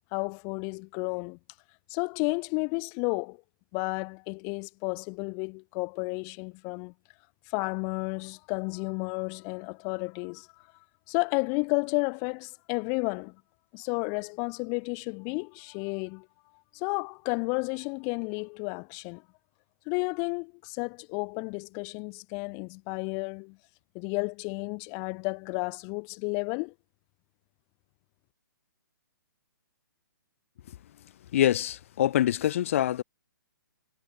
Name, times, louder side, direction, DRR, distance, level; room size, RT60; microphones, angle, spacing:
voice 1, 0.1-1.4 1.9-3.4 3.7-6.9 7.5-10.5 11.1-13.4 13.7-16.3 16.7-19.2 19.9-23.6 23.9-26.7, left 38 dB, 25° left, 1.9 m, -32 dB
voice 2, 31.3-33.0, left 12 dB, 40° left, 0.5 m, -25 dB
hypercardioid pair, 160°, 11 cm